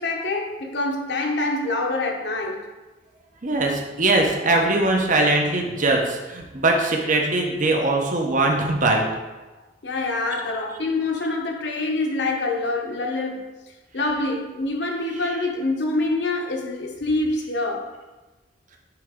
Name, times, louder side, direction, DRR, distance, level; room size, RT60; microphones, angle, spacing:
voice 1, 0.0-2.6 9.5-13.4 13.9-17.9, left 2 dB, 70° left, 1 dB, 1.1 m, -26 dB
voice 2, 3.4-9.1, right 2 dB, 45° right, 1 dB, 1.0 m, -21 dB
9.1 x 4.0 x 3.7 m, 1.2 s
head